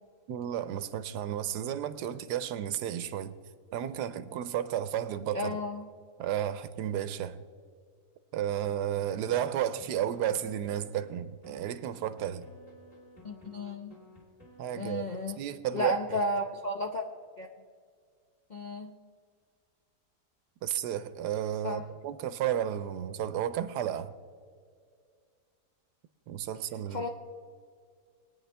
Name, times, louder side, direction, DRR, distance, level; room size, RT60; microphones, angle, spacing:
voice 1, 0.3-3.3 3.7-5.6 6.2-7.4 8.3-12.4 14.6-15.0 15.4-16.2 20.6-24.1 26.3-27.1, right 10 dB, 80° right, 13 dB, 1.2 m, -32 dB
voice 2, 5.3-5.9 13.2-14.0 14.7-15.4 15.7-17.1 17.4-17.5 18.5-18.9 21.6-21.8 26.9-27.1, left 1 dB, 50° left, 1 dB, 0.5 m, -33 dB
sound 1, 8.6-11.1 11.4-15.0, left 1 dB, 20° left, 3.4 m, -54 dB
22.0 x 9.7 x 3.4 m, 2.1 s
omnidirectional pair, 1.8 m